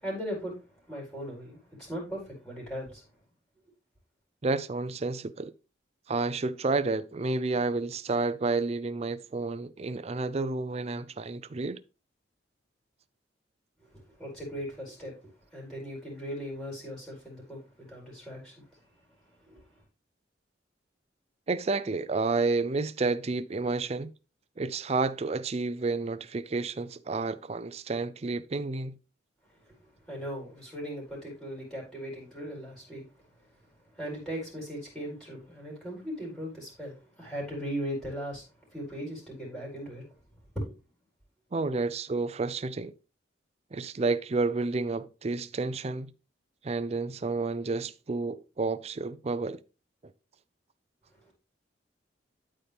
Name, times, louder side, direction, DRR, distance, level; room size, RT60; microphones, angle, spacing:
voice 1, 0.0-3.0 13.9-18.8 19.4-19.6 29.7-29.8 30.1-33.0 33.9-38.4 38.7-40.1 40.5-40.7 51.2-51.3, equal, 5° left, 4.3 m, -38 dB
voice 2, 4.4-5.5 6.1-11.8 21.5-24.1 24.6-29.0 41.5-42.9 43.7-46.1 46.6-49.6, right 3 dB, 35° right, 0.5 m, -30 dB
12.5 x 4.4 x 3.5 m
head